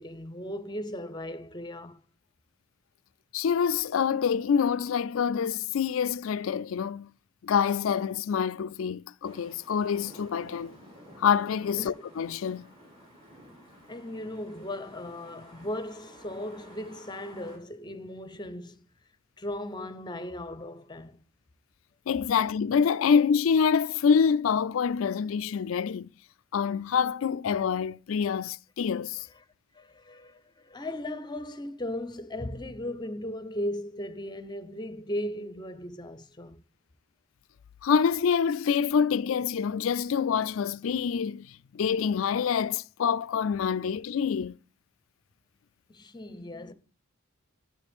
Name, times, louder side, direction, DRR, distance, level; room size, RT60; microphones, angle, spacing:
voice 1, 0.0-2.0 11.8-11.9 13.9-18.8 19.4-21.2 29.7-36.6 45.9-46.7, left 1 dB, 20° left, 0.8 m, -37 dB
voice 2, 3.3-7.1 7.4-10.8 11.2-12.7 22.1-26.1 26.5-29.2 37.8-41.5 41.7-44.6, left 7 dB, 75° left, 0.4 m, -26 dB
sound 1, 9.2-17.6, equal, 30° right, 4.4 m, -52 dB
11.5 x 7.5 x 3.6 m
head